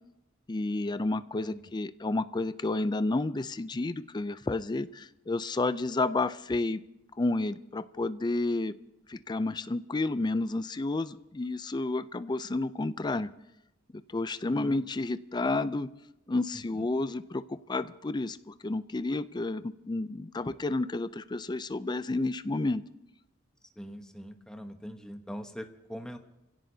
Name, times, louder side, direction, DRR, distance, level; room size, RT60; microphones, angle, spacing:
voice 1, 0.5-6.8 7.2-8.7 9.1-13.3 14.1-15.9 16.3-22.8, left 2 dB, 20° left, 13 dB, 0.4 m, -31 dB
voice 2, 14.4-14.9 16.5-16.9 23.8-26.2, equal, 5° left, 5 dB, 1.0 m, -43 dB
27.5 x 16.5 x 2.8 m, 0.93 s
head